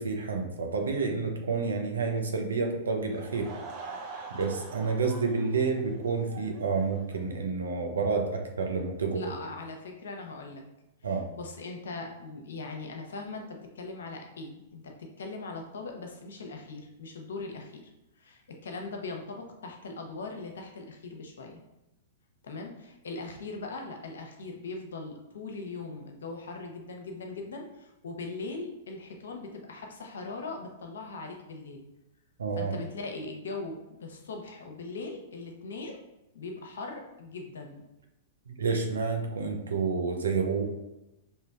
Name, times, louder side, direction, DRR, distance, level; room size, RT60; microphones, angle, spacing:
voice 1, 0.0-3.5 4.3-9.3 11.0-11.2 32.4-32.7 38.5-40.6, right 4 dB, 80° right, 3 dB, 0.7 m, -29 dB
Laughter / Crowd, 3.0-7.5, right 3 dB, 45° right, 0.7 m, -45 dB
voice 2, 9.1-10.6 11.0-17.9 18.2-21.6 22.4-31.8 32.6-36.0 36.3-37.8, left 3 dB, 75° left, 3 dB, 0.7 m, -40 dB
5.1 x 2.8 x 2.4 m, 0.94 s
hypercardioid pair, 110°, 0 cm